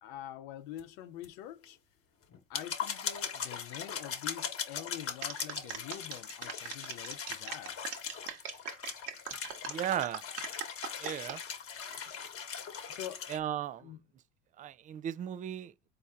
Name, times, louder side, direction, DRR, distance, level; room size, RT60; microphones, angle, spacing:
voice 1, 0.0-1.8 2.5-7.8 12.9-13.3 13.8-14.0, left 12 dB, 70° left, 0.8 m, -45 dB
sound 1, 0.8-0.9 1.2-1.3 1.6-1.7 2.3-13.4, left 7 dB, 40° left, 1.3 m, -40 dB
sound 2, 5.2-11.4 11.9-12.3, right 8 dB, 60° right, 1.3 m, -41 dB
voice 2, 9.7-10.2 11.0-11.4 13.3-13.9 14.6-15.7, right 10 dB, 25° right, 0.3 m, -36 dB
4.2 x 2.9 x 3.6 m
hypercardioid pair, 85°, 35 cm